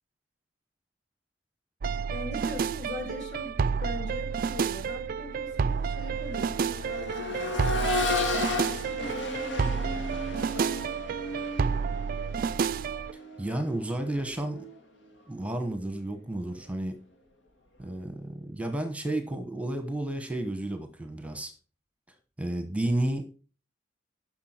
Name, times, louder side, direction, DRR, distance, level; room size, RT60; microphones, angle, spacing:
sound 1, 1.8-13.1, right 6 dB, 50° right, 0.3 m, -30 dB
voice 1, 2.1-11.0, left 1 dB, 70° left, 2 dB, 4.0 m, -41 dB
Accelerating revving vroom, 4.3-4.4 4.9-14.8 16.5-16.6, left 2 dB, 90° left, 1.8 m, -34 dB
voice 2, 13.4-14.6 15.3-17.0 17.8-21.5 22.4-23.3, right 1 dB, 5° right, 7 dB, 1.1 m, -32 dB
10.5 x 6.2 x 4.4 m, 0.34 s
head